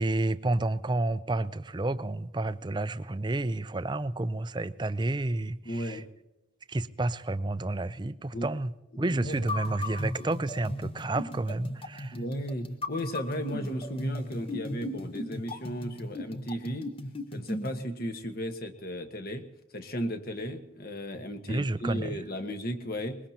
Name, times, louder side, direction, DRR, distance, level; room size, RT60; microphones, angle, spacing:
voice 1, 0.0-6.0 6.7-8.7 9.0-12.2 21.5-22.2, right 2 dB, 20° right, 0.4 m, -30 dB
voice 2, 5.6-6.1 8.3-8.5 8.9-9.4 12.1-16.9 17.3-19.4 19.7-23.2, equal, 50° left, 1.4 m, -35 dB
sound 1, 9.3-17.8, left 1 dB, 30° left, 0.9 m, -36 dB
23.0 x 21.0 x 2.9 m
head